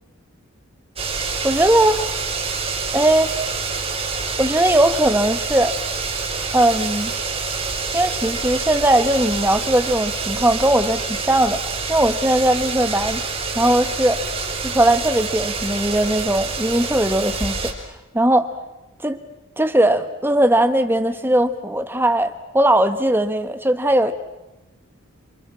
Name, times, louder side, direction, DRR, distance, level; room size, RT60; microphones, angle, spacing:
sound 1, 1.0-17.7, right 4 dB, 25° right, 4.3 m, -27 dB
voice 1, 1.4-2.1 2.9-3.4 4.4-5.7 6.5-7.1 7.9-11.6 11.9-13.2 13.5-14.2 14.8-17.7 18.1-18.5 19.0-19.2 19.6-24.1, right 1 dB, 10° right, 9 dB, 1.3 m, -19 dB
28.5 x 27.0 x 6.2 m, 1.0 s
head